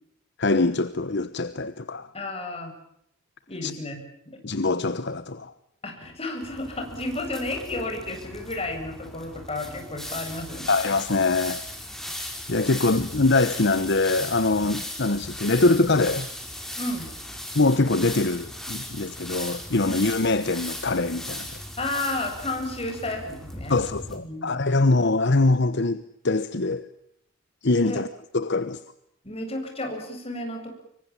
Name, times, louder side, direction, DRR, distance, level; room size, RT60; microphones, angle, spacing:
voice 1, 0.4-2.1 3.6-3.7 4.4-5.5 10.7-11.6 12.1-16.3 17.5-21.5 23.7-26.9 27.6-28.1 28.3-28.8, left 3 dB, 60° left, 1.1 m, -23 dB
voice 2, 2.1-2.7 3.5-4.0 4.3-4.4 5.8-10.9 16.8-17.1 19.8-20.1 21.8-23.8 24.1-24.6 27.8-28.0 29.2-30.7, left 2 dB, 30° left, 8.0 m, -32 dB
sound 1, 6.4-24.2, left 1 dB, ahead, 4.8 m, -37 dB
26.0 x 24.0 x 7.3 m
head